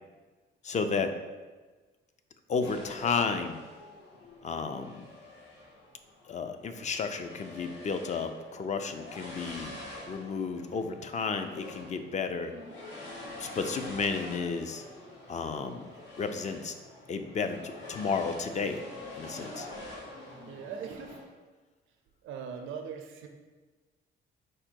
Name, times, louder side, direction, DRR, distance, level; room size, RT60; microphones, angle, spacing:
voice 1, 0.6-1.1 2.5-3.6 4.4-5.0 6.3-9.8 10.1-12.5 13.4-14.8 15.3-15.9 16.2-16.8 17.1-18.8 19.1-19.7, left 5 dB, 35° left, 8 dB, 0.4 m, -32 dB
sound 1, 2.6-21.3, left 2 dB, 85° left, 1.1 m, -46 dB
voice 2, 20.5-21.2 22.2-23.3, right 6 dB, 80° right, 3 dB, 0.5 m, -40 dB
4.8 x 2.2 x 4.4 m, 1.3 s
cardioid pair, 90°, 20 cm